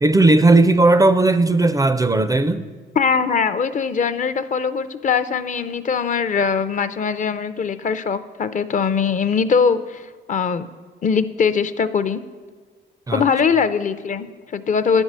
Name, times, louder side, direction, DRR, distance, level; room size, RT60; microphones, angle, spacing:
voice 1, 0.0-2.7 13.1-13.2, right 2 dB, 20° right, 12 dB, 0.4 m, -16 dB
voice 2, 3.0-10.0 10.3-10.7 11.0-12.2 13.1-15.0, left 6 dB, 40° left, 13 dB, 0.5 m, -21 dB
9.5 x 5.4 x 7.3 m, 1.5 s
cardioid pair, 90°, 20 cm